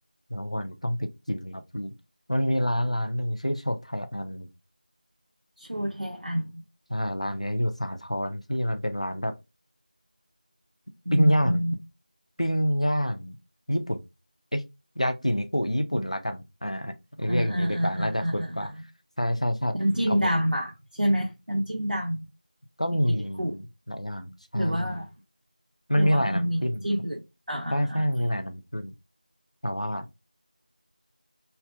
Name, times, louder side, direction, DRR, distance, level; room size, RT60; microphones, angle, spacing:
voice 1, 0.3-1.9 2.3-4.5 6.9-9.3 11.1-11.6 12.4-13.4 13.7-14.0 14.5-14.6 15.0-18.7 19.2-19.8 20.1-20.3 22.8-25.0 25.9-26.9 27.7-28.9 29.6-30.1, equal, 50° left, 0.5 m, -27 dB
voice 2, 5.6-6.6 11.0-11.7 17.3-18.8 19.8-22.3 23.1-23.6 24.5-25.1 25.9-27.2 27.5-28.1, equal, 90° right, 0.9 m, -28 dB
3.2 x 2.1 x 2.4 m
figure-of-eight pair, 180°, 5 cm